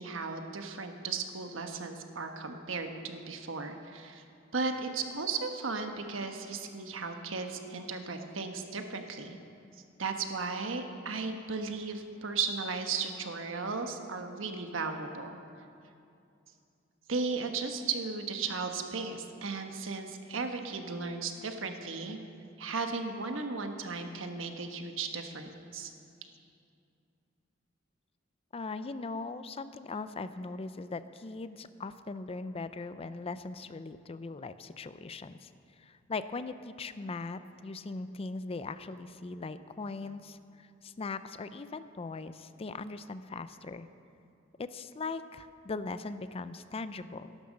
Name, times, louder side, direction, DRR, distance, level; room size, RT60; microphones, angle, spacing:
voice 1, 0.0-4.2 4.5-9.4 10.0-15.4 17.1-22.2 22.6-25.9, right 4 dB, 85° right, 5 dB, 1.2 m, -35 dB
voice 2, 28.5-35.5 35.8-43.9 44.6-47.4, left 3 dB, 30° left, 12 dB, 0.4 m, -40 dB
13.5 x 11.5 x 6.4 m, 2.5 s
head